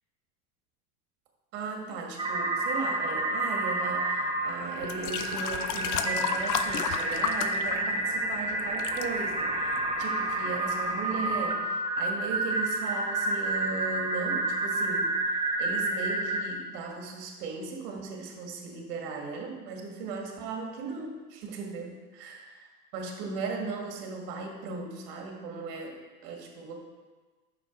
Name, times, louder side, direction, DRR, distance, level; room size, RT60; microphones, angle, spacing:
voice 1, 1.5-22.5 22.9-26.0 26.2-26.7, right 4 dB, 65° right, 1 dB, 1.7 m, -37 dB
sound 1, 2.2-16.4, right 2 dB, 10° right, 1.0 m, -29 dB
sound 2, 4.2-4.3 4.8-8.3 8.6-9.1 9.8-9.9, left 8 dB, 80° left, 0.7 m, -33 dB
6.2 x 5.1 x 5.0 m, 1.3 s
hypercardioid pair, 105°, 50 cm